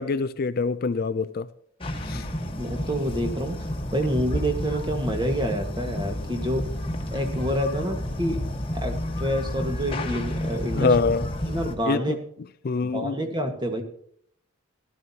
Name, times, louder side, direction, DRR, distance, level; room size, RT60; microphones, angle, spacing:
voice 1, 0.0-1.5 2.0-2.3 10.7-11.3 11.9-12.2 12.6-13.2, left 4 dB, 45° left, 0.4 m, -25 dB
sound 1, 1.8-11.8, left 1 dB, 25° left, 1.3 m, -31 dB
voice 2, 2.6-3.6 3.9-6.7 7.1-8.4 8.7-11.0 11.4-12.2 12.8-13.8, equal, 20° right, 1.6 m, -28 dB
17.0 x 12.5 x 2.8 m
head